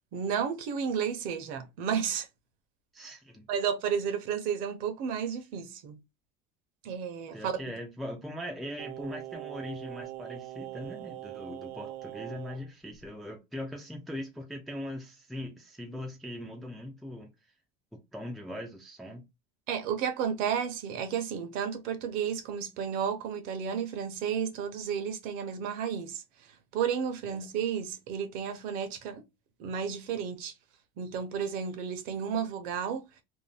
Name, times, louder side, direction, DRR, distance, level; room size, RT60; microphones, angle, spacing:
voice 1, 0.1-2.3 3.5-6.0 6.8-7.6 19.7-29.2 29.6-30.5 31.0-33.0, right 7 dB, 50° right, 0.7 m, -32 dB
voice 2, 2.9-3.5 7.3-17.3 17.9-19.2 27.2-27.5, left 1 dB, ahead, 0.3 m, -40 dB
Singing, 8.8-12.6 13.0-13.1, right 15 dB, 90° right, 0.4 m, -42 dB
2.6 x 2.0 x 3.2 m
cardioid pair, 160°, 18 cm